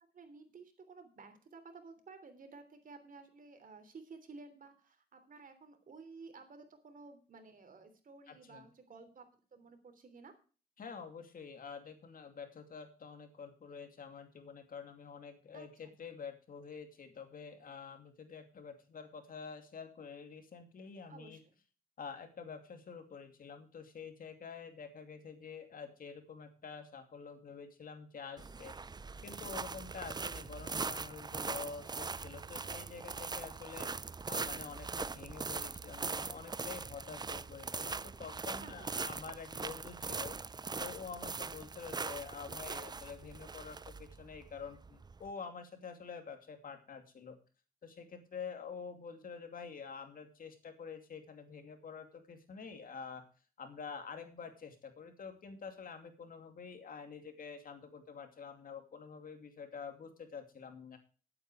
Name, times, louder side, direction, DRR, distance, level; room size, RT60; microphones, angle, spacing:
voice 1, 0.1-10.3 15.5-15.7 21.1-21.4 38.6-39.0, right 4 dB, 65° right, 8 dB, 3.3 m, -54 dB
voice 2, 8.3-8.7 10.8-21.4 22.0-28.7 29.2-33.9 34.3-40.4 40.8-47.4 47.8-53.2 53.6-61.0, left 6 dB, 65° left, 6 dB, 2.6 m, -48 dB
sound 1, 28.4-45.3, right 4 dB, 25° right, 0.5 m, -41 dB
12.0 x 8.8 x 4.9 m, 0.36 s
cardioid pair, 65°, 15 cm